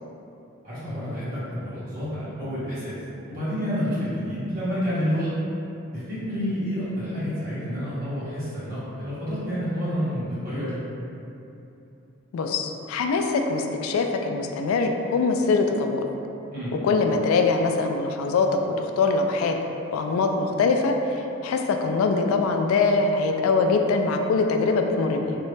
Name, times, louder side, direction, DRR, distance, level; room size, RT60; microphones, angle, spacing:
voice 1, 0.6-3.0 3.3-5.3 5.9-10.8 16.5-16.7, equal, 45° right, -11 dB, 1.2 m, -29 dB
voice 2, 12.3-16.0 16.8-19.6 19.9-25.4, left 4 dB, 90° left, 8 dB, 0.3 m, -23 dB
3.6 x 2.1 x 3.2 m, 2.8 s
head